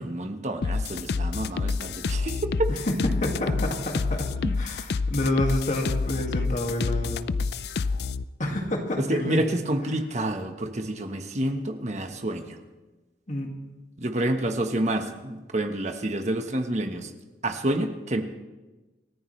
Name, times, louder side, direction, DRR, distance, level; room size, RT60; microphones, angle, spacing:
voice 1, 0.0-2.7 4.4-4.6 9.2-12.6 14.0-17.1 17.4-18.2, right 1 dB, 40° right, 6 dB, 1.3 m, -28 dB
sound 1, 0.6-8.2, left 4 dB, 65° left, 0.4 m, -28 dB
voice 2, 2.7-4.3 4.6-7.3 8.4-9.4 13.3-13.5, left 1 dB, 45° left, 2 dB, 2.1 m, -28 dB
28.0 x 14.5 x 3.3 m, 1.2 s
head